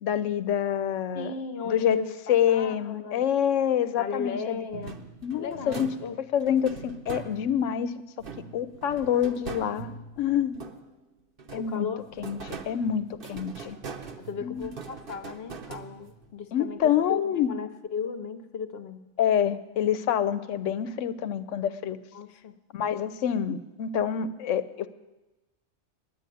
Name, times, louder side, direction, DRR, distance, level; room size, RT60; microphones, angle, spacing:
voice 1, 0.0-1.3 1.7-2.0 2.3-4.6 5.2-5.9 6.3-8.0 8.5-10.6 11.5-11.9 12.2-13.8 14.4-14.7 16.5-17.5 19.2-22.0 22.7-24.9, left 9 dB, 85° left, 13 dB, 1.0 m, -27 dB
voice 2, 1.1-3.3 3.9-5.0 5.3-6.2 11.6-12.0 14.2-19.1 22.1-22.5, left 5 dB, 60° left, 9 dB, 0.9 m, -36 dB
sound 1, 4.7-7.7 8.2-11.0 11.4-16.3, right 5 dB, 50° right, 1.0 m, -42 dB
10.0 x 9.3 x 9.1 m, 1.1 s
omnidirectional pair, 1.3 m